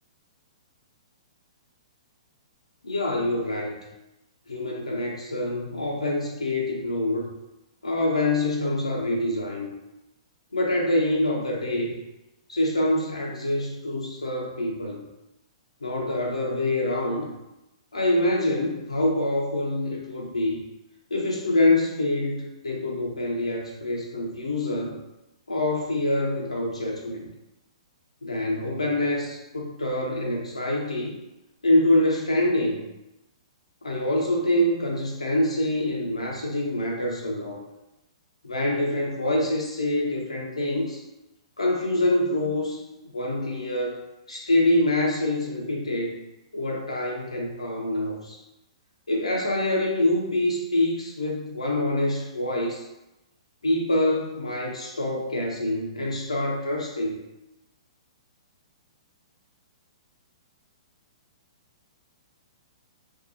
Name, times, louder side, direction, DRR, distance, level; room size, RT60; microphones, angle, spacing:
voice 1, 2.8-3.8 4.5-7.3 7.8-9.7 10.5-12.0 12.5-15.0 15.8-17.3 17.9-20.6 21.1-25.0 25.5-27.3 28.2-31.2 31.6-32.9 33.8-37.6 38.4-41.0 41.6-42.8 43.1-44.0 44.3-46.2 46.5-48.4 49.1-52.9 53.6-57.2, left 1 dB, 80° left, -2 dB, 0.5 m, -25 dB
2.6 x 2.2 x 2.6 m, 0.95 s
figure-of-eight pair, 115°, 3 cm